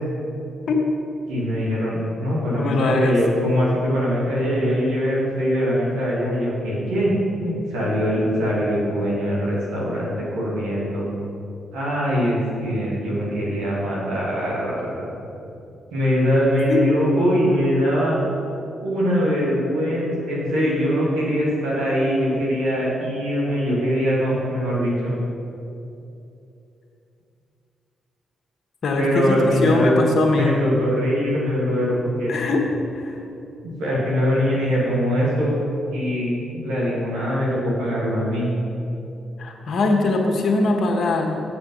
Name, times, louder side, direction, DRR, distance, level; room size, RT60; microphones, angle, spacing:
voice 1, 1.3-7.1 7.4-11.1 11.7-15.1 15.9-18.2 18.8-25.1 29.0-32.4 33.6-35.6 35.9-38.5, equal, 85° right, -5 dB, 2.3 m, -22 dB
voice 2, 2.6-3.1 7.4-7.5 16.7-16.8 28.8-30.5 32.3-33.2 39.4-41.4, left 3 dB, 60° left, 2 dB, 1.3 m, -21 dB
7.9 x 6.9 x 5.6 m, 2.8 s
supercardioid pair, 50°, 0 cm